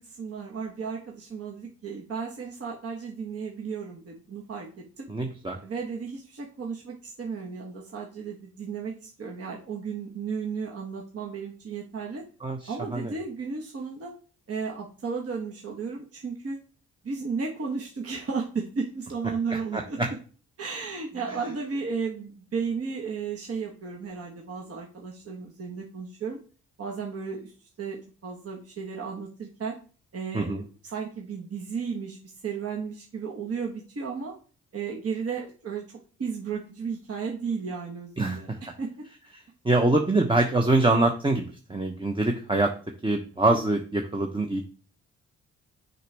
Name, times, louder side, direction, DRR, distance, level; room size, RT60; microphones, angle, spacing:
voice 1, 0.0-4.7 5.0-5.1 5.6-12.2 12.7-14.1 14.5-16.6 17.0-20.0 20.6-26.4 26.8-27.5 27.8-28.0 28.2-29.8 30.1-32.2 32.4-34.3 34.7-38.5 38.8-38.9, right 5 dB, 45° right, -1 dB, 1.3 m, -34 dB
voice 2, 5.1-5.6 12.4-13.1 19.5-20.1 30.3-30.6 38.2-38.6 39.6-42.7 43.0-44.6, right 2 dB, 15° right, 2 dB, 0.9 m, -24 dB
6.5 x 5.0 x 3.4 m, 0.39 s
supercardioid pair, 55°, 32 cm